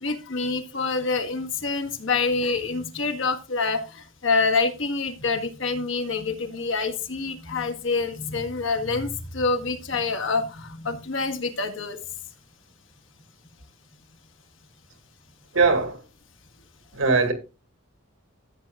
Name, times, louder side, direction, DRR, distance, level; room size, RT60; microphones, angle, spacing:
voice 1, 0.0-12.0, left 4 dB, 70° left, 1.7 m, -26 dB
voice 2, 15.5-16.0 16.9-17.3, right 4 dB, 80° right, 2.2 m, -20 dB
14.5 x 8.7 x 2.4 m
head